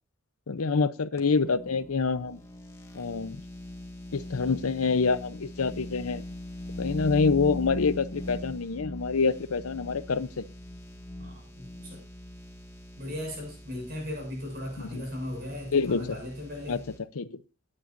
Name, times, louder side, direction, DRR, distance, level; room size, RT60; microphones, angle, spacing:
voice 1, 0.5-2.4 2.9-3.4 4.1-6.2 6.8-10.4 14.8-15.0 15.7-16.2 16.7-16.8 17.1-17.4, left 4 dB, 75° left, 15 dB, 0.6 m, -26 dB
sound 1, 1.2-17.0, left 1 dB, 15° left, 1.6 m, -41 dB
voice 2, 11.2-12.0 13.0-16.8, left 1 dB, 45° right, 1 dB, 6.9 m, -37 dB
17.5 x 9.8 x 2.6 m, 0.33 s
head